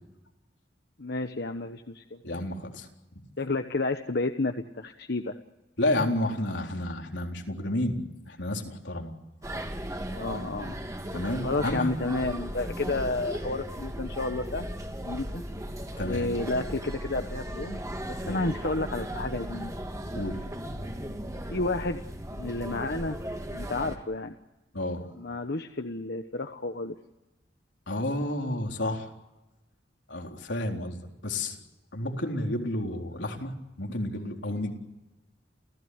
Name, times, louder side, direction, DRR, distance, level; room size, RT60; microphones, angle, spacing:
voice 1, 1.0-2.2 3.4-5.4 10.1-10.8 11.4-14.7 15.0-15.4 16.0-17.8 18.3-19.7 21.5-22.0 22.3-23.2 23.5-24.3 25.2-26.9, left 2 dB, 60° left, 7 dB, 1.2 m, -31 dB
voice 2, 2.2-2.9 5.8-8.0 8.3-9.1 11.1-11.9 16.0-16.3 18.3-18.4 20.1-20.4 24.7-25.0 27.9-29.1 30.1-31.0 31.2-31.6 31.9-34.7, left 1 dB, 85° left, 2 dB, 4.0 m, -30 dB
sound 1, 9.4-24.0, equal, 20° right, 2.7 m, -36 dB
29.5 x 16.0 x 9.6 m, 1.0 s
head